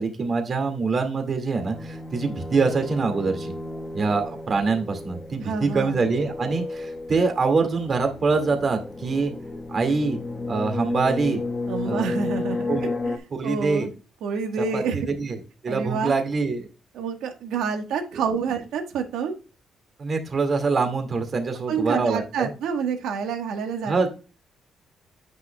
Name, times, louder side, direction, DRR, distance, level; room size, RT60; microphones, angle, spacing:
voice 1, 0.0-3.5 3.9-9.3 9.7-10.2 10.5-11.4 11.8-12.1 12.7-12.9 13.3-13.9 14.6-16.7 20.0-22.5 23.8-24.1, right 4 dB, 40° right, 5 dB, 2.2 m, -24 dB
sound 1, 1.6-13.2, left 3 dB, 25° left, 1.4 m, -32 dB
voice 2, 5.4-6.0 11.7-12.7 13.0-13.9 14.2-15.0 15.6-16.1 16.9-19.4 21.7-24.1, right 6 dB, 85° right, 5 dB, 1.5 m, -28 dB
9.1 x 6.4 x 2.3 m, 0.33 s
cardioid pair, 90°, 0 cm